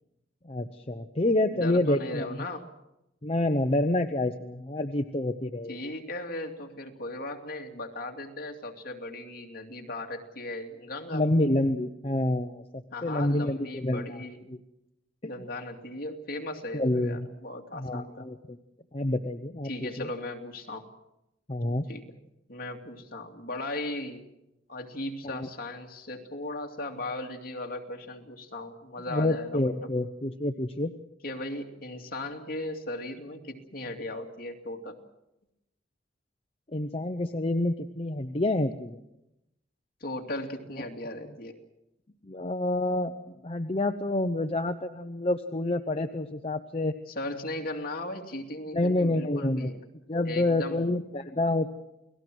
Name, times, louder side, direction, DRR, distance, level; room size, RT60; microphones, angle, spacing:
voice 1, 0.4-2.4 3.2-5.9 11.1-14.2 14.5-14.6 16.7-17.3 17.7-18.6 18.9-19.7 20.0-20.1 21.5-21.8 25.2-25.5 29.1-30.9 36.7-39.0 42.2-46.9 48.7-49.7 50.1-51.7, left 1 dB, 30° left, 6 dB, 0.9 m, -28 dB
voice 2, 1.5-2.7 5.7-11.3 12.9-14.5 15.2-18.3 19.6-20.8 21.9-22.2 22.5-24.3 24.7-29.9 31.2-35.0 40.0-41.6 47.1-49.8 50.2-50.9, left 1 dB, 50° left, 2 dB, 2.6 m, -37 dB
29.5 x 19.0 x 6.3 m, 0.89 s
head